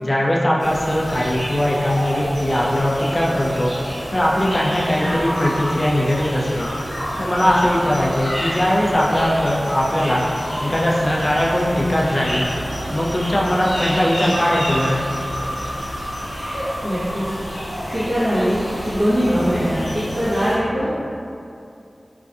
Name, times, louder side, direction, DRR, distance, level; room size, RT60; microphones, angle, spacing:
voice 1, 0.0-3.7 4.1-6.7 7.2-10.2 10.6-12.5 12.9-15.1, equal, 30° left, -4 dB, 0.4 m, -20 dB
sound 1, 0.6-20.5, equal, 65° left, 0.9 m, -28 dB
voice 2, 16.8-17.4 17.9-20.9, equal, 25° right, -15 dB, 0.8 m, -21 dB
2.5 x 2.2 x 2.3 m, 2.5 s
wide cardioid pair, 75°, 0 cm